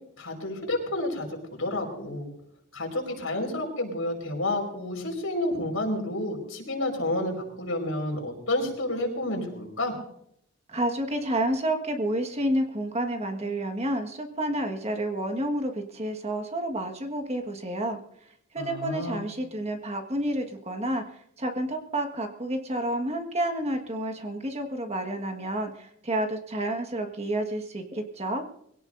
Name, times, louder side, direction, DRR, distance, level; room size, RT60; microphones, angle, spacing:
voice 1, 0.2-2.3 2.7-9.9 18.6-19.2, left 1 dB, 75° left, 2 dB, 4.9 m, -30 dB
voice 2, 10.7-18.0 18.5-21.0 21.4-28.4, right 1 dB, 30° right, 5 dB, 1.6 m, -30 dB
22.0 x 17.5 x 2.6 m, 0.72 s
head